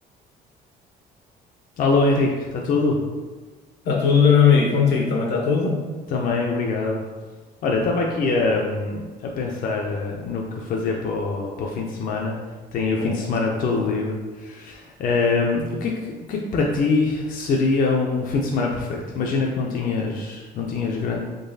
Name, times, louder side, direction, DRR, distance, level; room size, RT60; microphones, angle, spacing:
voice 1, 1.8-3.0 6.1-7.0 7.6-12.4 12.7-21.2, left 3 dB, 55° left, -1 dB, 0.5 m, -24 dB
voice 2, 3.8-5.8 13.0-13.2, left 6 dB, 80° left, -1 dB, 0.9 m, -18 dB
3.8 x 3.0 x 2.7 m, 1.3 s
cardioid pair, 110°, 17 cm